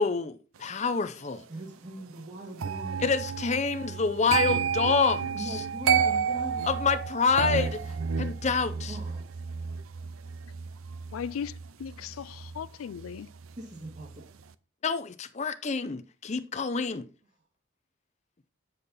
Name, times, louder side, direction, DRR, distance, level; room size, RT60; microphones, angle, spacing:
voice 1, 0.0-1.4 3.0-5.6 6.7-8.9 14.8-17.1, left 5 dB, 35° left, 0.5 m, -27 dB
voice 2, 1.5-3.1 5.3-6.6 8.9-9.4 13.6-14.4, right 1 dB, 35° right, 1.7 m, -41 dB
sound 1, 2.6-13.6 13.8-14.2, right 6 dB, 80° right, 0.5 m, -31 dB
voice 3, 11.1-13.3, left 7 dB, 90° left, 0.4 m, -37 dB
8.4 x 5.3 x 4.1 m
head